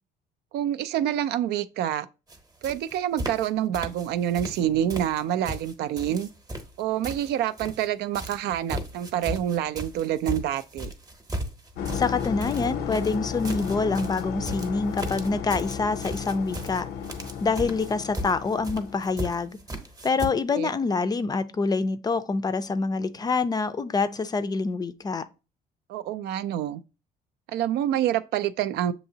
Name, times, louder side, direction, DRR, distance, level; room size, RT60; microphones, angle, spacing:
voice 1, 0.5-2.1 2.6-6.3 6.8-10.9 20.5-20.7 25.9-26.8 27.5-28.9, right 11 dB, 75° right, 0.4 m, -27 dB
sound 1, 2.3-2.4 2.6-3.5 3.7-4.6 4.9-7.9 8.1-20.3, right 1 dB, 20° right, 0.9 m, -36 dB
sound 2, 11.8-19.4, left 7 dB, 90° left, 0.6 m, -34 dB
voice 2, 11.9-16.9 17.4-19.6 20.0-25.2, left 4 dB, 25° left, 0.4 m, -26 dB
6.8 x 2.8 x 2.7 m
cardioid pair, 110°, 17 cm